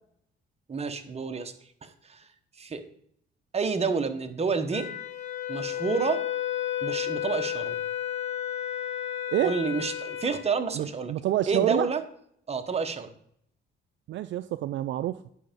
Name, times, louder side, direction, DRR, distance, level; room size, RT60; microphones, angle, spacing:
voice 1, 0.7-1.5 1.8-2.3 2.6-2.8 3.5-4.9 5.5-6.2 6.8-7.7 9.4-11.1 11.5-12.0 12.5-13.1, right 4 dB, 30° right, 7 dB, 1.1 m, -29 dB
Wind instrument woodwind instrument, 4.7-10.4, left 11 dB, 65° left, 3.1 m, -32 dB
voice 2, 10.7-11.9 14.1-15.2, right 13 dB, 70° right, 13 dB, 0.4 m, -27 dB
9.9 x 5.6 x 5.2 m, 0.69 s
cardioid pair, 90°, 20 cm